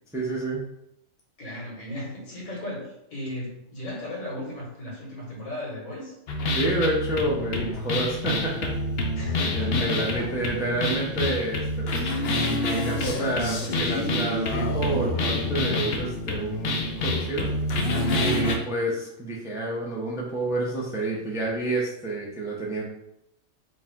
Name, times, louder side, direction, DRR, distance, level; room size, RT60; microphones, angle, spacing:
voice 1, 0.1-0.7 6.5-8.8 9.5-12.2 12.6-17.5 18.1-22.8, right 2 dB, 5° right, -3 dB, 0.6 m, -29 dB
voice 2, 1.4-6.1 9.1-10.5 18.3-18.6, left 1 dB, 80° left, -4 dB, 2.0 m, -36 dB
sound 1, 6.3-18.5, left 1 dB, 55° left, 0.8 m, -27 dB
5.0 x 2.4 x 3.6 m, 0.79 s
omnidirectional pair, 1.4 m